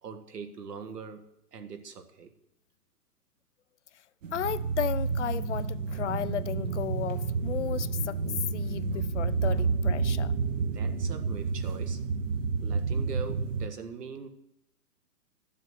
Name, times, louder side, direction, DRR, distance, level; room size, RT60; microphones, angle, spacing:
voice 1, 0.0-1.2 1.5-2.3 10.7-12.0 12.6-14.3, right 6 dB, 75° right, 1.9 m, -42 dB
sound 1, 4.2-13.7, right 4 dB, 50° right, 1.1 m, -30 dB
voice 2, 4.3-8.2 8.5-10.3, left 10 dB, 50° left, 0.5 m, -34 dB
12.5 x 7.6 x 7.8 m
hypercardioid pair, 155°, 47 cm